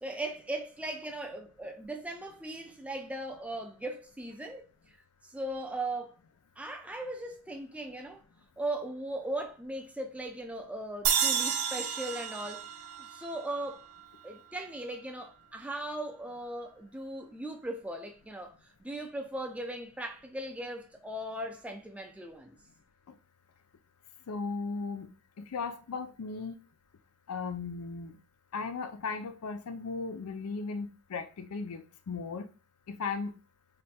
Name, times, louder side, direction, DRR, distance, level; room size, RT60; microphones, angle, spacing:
voice 1, 0.0-4.6 5.2-6.2 6.6-8.2 8.6-12.7 13.0-13.8 14.2-22.6, right 1 dB, 5° right, 0.4 m, -38 dB
sound 1, 11.0-14.3, right 7 dB, 80° right, 0.6 m, -31 dB
voice 2, 24.3-25.1 25.5-26.6 27.3-28.2 28.5-32.5 32.9-33.3, left 4 dB, 85° left, 0.5 m, -36 dB
3.3 x 2.2 x 4.1 m
head